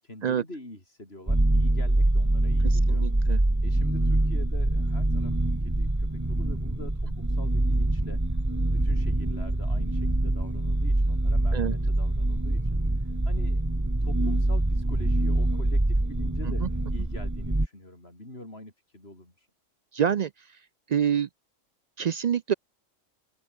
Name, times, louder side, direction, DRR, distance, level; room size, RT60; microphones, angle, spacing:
voice 1, 0.0-3.0 3.6-8.2 8.7-13.6 14.0-19.5, left 1 dB, 50° left, 7.1 m, -45 dB
sound 1, 1.3-17.7, right 1 dB, 15° right, 1.7 m, -25 dB
voice 2, 2.9-3.4 11.5-11.7 16.6-16.7 19.9-20.3 20.9-21.3 22.0-22.5, right 8 dB, 70° right, 0.4 m, -26 dB
open air
omnidirectional pair, 1.3 m